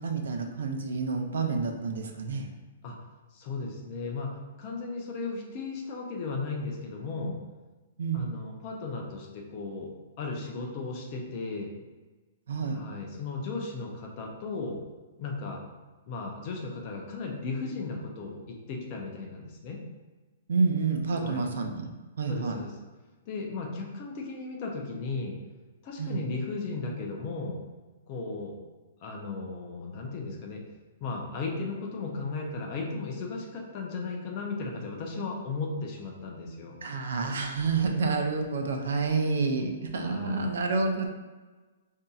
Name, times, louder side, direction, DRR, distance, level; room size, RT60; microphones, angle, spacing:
voice 1, 0.0-2.5 8.0-8.3 12.5-12.8 20.5-21.9 22.2-22.6 26.0-26.2 36.8-41.1, right 4 dB, 70° right, 4 dB, 0.6 m, -28 dB
voice 2, 3.3-7.4 8.1-9.9 10.2-11.7 12.7-14.8 15.2-15.6 16.1-19.8 21.1-21.5 22.3-22.8 23.3-25.4 25.8-27.6 28.1-28.5 29.0-30.6 31.0-36.8 40.0-40.5, left 3 dB, 25° left, 0 dB, 0.5 m, -35 dB
5.2 x 2.7 x 2.3 m, 1.2 s
hypercardioid pair, 180°, 0 cm